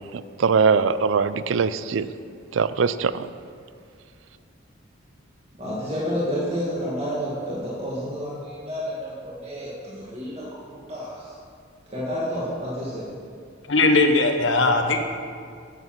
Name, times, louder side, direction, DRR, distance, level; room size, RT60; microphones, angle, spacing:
voice 1, 0.1-2.1 2.5-3.3, right 5 dB, 75° right, 14 dB, 0.4 m, -22 dB
voice 2, 5.5-11.3 11.9-13.1, equal, 35° right, -7 dB, 1.9 m, -30 dB
voice 3, 13.6-15.0, left 3 dB, 70° left, 6 dB, 1.0 m, -19 dB
9.7 x 7.6 x 6.0 m, 2.2 s
head